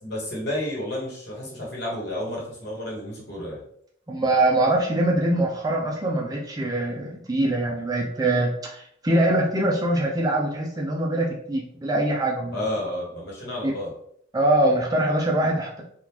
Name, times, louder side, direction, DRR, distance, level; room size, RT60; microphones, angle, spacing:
voice 1, 0.0-3.6 12.5-13.9, left 1 dB, 55° left, -4 dB, 1.3 m, -31 dB
voice 2, 4.1-12.6 13.6-13.7 14.3-15.8, right 1 dB, 20° right, -1 dB, 0.5 m, -23 dB
3.5 x 2.4 x 2.9 m, 0.67 s
head